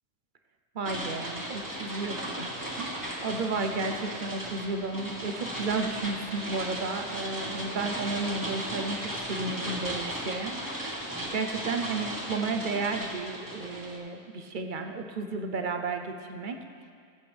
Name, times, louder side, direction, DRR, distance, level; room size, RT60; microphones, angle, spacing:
voice 1, 0.7-16.6, right 3 dB, 50° right, 5 dB, 0.7 m, -33 dB
sound 1, 0.8-14.0, right 1 dB, 15° right, 1.4 m, -36 dB
20.5 x 7.8 x 3.4 m, 2.3 s
omnidirectional pair, 1.4 m